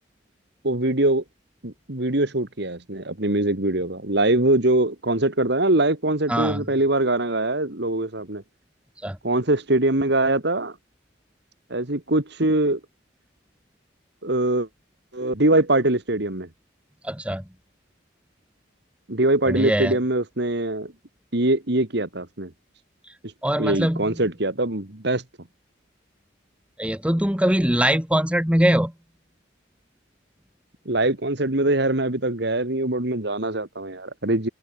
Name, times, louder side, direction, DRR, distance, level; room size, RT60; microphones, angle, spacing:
voice 1, 0.6-1.2 1.6-8.4 9.2-10.8 11.7-12.8 14.2-14.7 15.1-16.5 19.1-20.9 21.3-22.5 23.6-25.2 30.9-34.5, right 2 dB, 60° right, 2.2 m, -22 dB
voice 2, 6.3-6.6 9.0-9.2 17.0-17.4 19.4-20.0 23.4-24.1 26.8-28.9, equal, 5° right, 1.4 m, -22 dB
open air
head